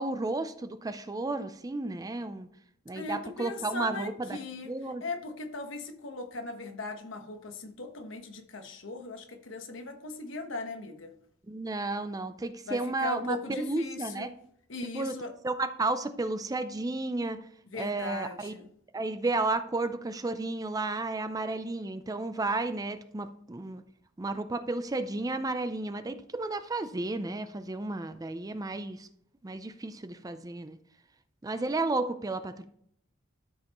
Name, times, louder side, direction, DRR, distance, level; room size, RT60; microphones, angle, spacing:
voice 1, 0.0-2.5 2.9-4.4 4.7-5.0 11.5-14.3 14.9-15.2 15.4-17.4 17.7-18.5 18.9-23.8 24.2-29.1 29.4-30.8 31.4-32.6, right 2 dB, 20° right, 10 dB, 0.4 m, -32 dB
voice 2, 2.9-4.7 5.0-11.1 12.7-14.3 14.7-15.3 17.7-18.7, left 2 dB, 70° left, 5 dB, 1.2 m, -38 dB
13.0 x 5.5 x 3.0 m, 0.68 s
head